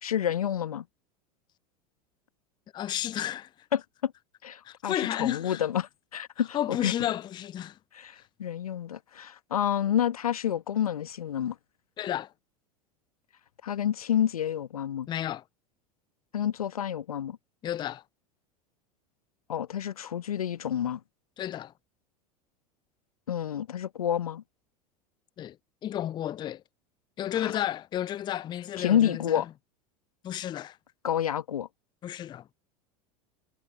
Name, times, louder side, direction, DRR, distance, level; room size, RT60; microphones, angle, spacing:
voice 1, 0.0-0.8 3.7-4.1 4.4-6.9 7.9-11.6 13.6-15.1 16.3-17.4 19.5-21.0 23.3-24.4 27.3-27.6 28.8-29.5 31.0-31.7, left 10 dB, 70° left, 1.4 m, -29 dB
voice 2, 2.7-3.5 4.6-5.6 6.5-7.8 12.0-12.3 15.1-15.4 17.6-18.0 21.4-21.7 25.4-25.6 25.8-26.6 27.2-29.4 30.2-30.8 32.0-32.5, left 11 dB, 25° left, 0.5 m, -32 dB
figure-of-eight pair, 80°, 19 cm